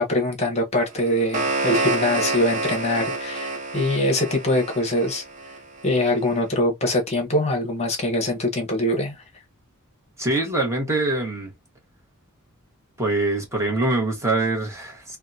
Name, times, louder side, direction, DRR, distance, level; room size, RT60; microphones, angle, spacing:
voice 1, 0.0-5.2 5.8-9.2, left 1 dB, 30° left, 0.9 m, -23 dB
sound 1, 0.9-6.0, right 3 dB, 35° right, 0.8 m, -28 dB
voice 2, 10.2-11.5 13.0-15.2, right 2 dB, 15° right, 1.1 m, -24 dB
3.6 x 2.2 x 2.6 m
head